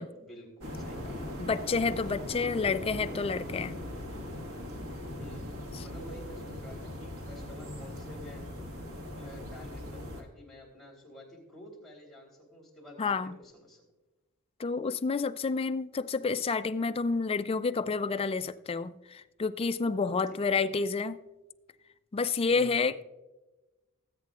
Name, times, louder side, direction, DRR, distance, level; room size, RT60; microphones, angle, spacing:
voice 1, 0.1-1.4 2.6-3.7 5.2-5.5 5.8-8.4 9.1-13.8 20.3-20.6 22.5-22.9, equal, ahead, 3.3 m, -49 dB
sound 1, 0.6-10.2, left 1 dB, 80° right, 1.6 m, -40 dB
voice 2, 1.4-3.7 13.0-13.3 14.6-21.2 22.1-23.0, left 4 dB, 25° left, 0.3 m, -29 dB
20.0 x 8.3 x 2.4 m
head